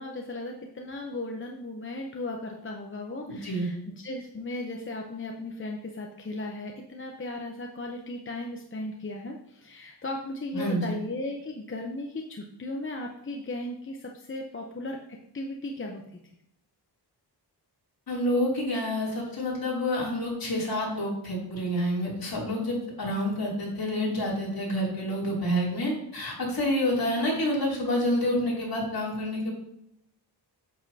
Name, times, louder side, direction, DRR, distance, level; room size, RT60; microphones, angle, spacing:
voice 1, 0.0-16.0, left 2 dB, 30° left, 1 dB, 0.8 m, -36 dB
voice 2, 3.3-3.7 10.5-11.0 18.1-29.5, left 1 dB, 55° left, -4 dB, 3.1 m, -28 dB
8.4 x 7.4 x 2.8 m, 0.77 s
wide cardioid pair, 100°, 42 cm